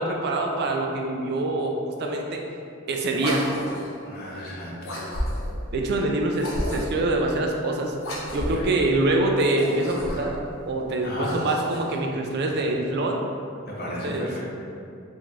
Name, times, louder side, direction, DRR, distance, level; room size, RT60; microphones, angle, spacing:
voice 1, 0.0-2.4 2.9-3.4 5.7-7.9 8.3-10.4 10.7-13.2 14.0-14.3, right 2 dB, 55° right, 2 dB, 0.4 m, -25 dB
sound 1, 3.1-4.0 4.8-5.6 6.3-7.1 8.0-8.7 9.4-10.4 11.0-12.0, left 1 dB, 80° left, 0.9 m, -32 dB
voice 2, 4.1-5.2 8.5-8.7 11.0-11.3 13.7-14.4, left 1 dB, 50° left, -4 dB, 0.7 m, -34 dB
3.1 x 2.6 x 3.5 m, 2.5 s
head